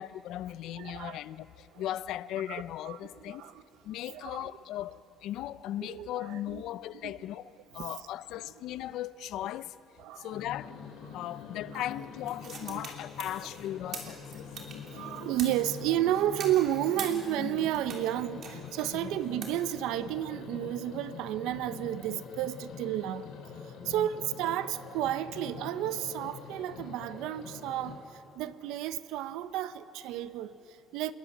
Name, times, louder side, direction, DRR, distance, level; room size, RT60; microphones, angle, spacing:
voice 1, 0.0-3.4 3.8-9.7 10.2-10.7 11.1-14.5 18.9-19.1 23.8-24.1, left 12 dB, 60° left, 0.5 m, -38 dB
voice 2, 0.8-1.2 1.7-1.8 2.5-3.0 3.3-3.6 4.1-4.5 5.8-6.6 7.0-7.1 7.8-7.9 10.0-10.4 11.7-11.8 12.7-12.8 14.6-23.3 23.6-31.1, right 12 dB, 85° right, 0.8 m, -32 dB
sound 1, 10.3-28.0, left 6 dB, 85° left, 4.4 m, -45 dB
sound 2, 11.9-18.1 18.4-20.2, right 5 dB, 40° right, 3.2 m, -44 dB
27.5 x 21.0 x 7.2 m
cardioid pair, 175°, 0 cm